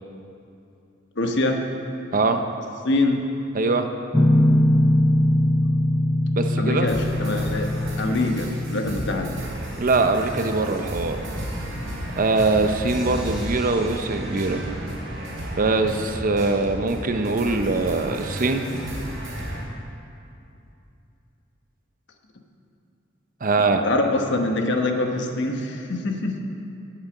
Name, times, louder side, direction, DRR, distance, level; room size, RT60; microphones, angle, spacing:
voice 1, 1.2-1.6 2.8-3.2 6.6-7.7 8.0-9.3 23.8-26.4, left 2 dB, 65° left, 3 dB, 1.1 m, -24 dB
voice 2, 3.5-3.9 6.4-6.9 9.8-11.2 12.2-14.6 15.5-18.7 23.4-23.8, right 3 dB, 45° right, 7 dB, 0.7 m, -22 dB
Guitar, 4.1-9.4, left 1 dB, 10° left, 0.3 m, -21 dB
sound 1, 6.9-19.6, right 1 dB, 65° right, 3.2 m, -33 dB
8.6 x 8.2 x 7.9 m, 2.6 s
head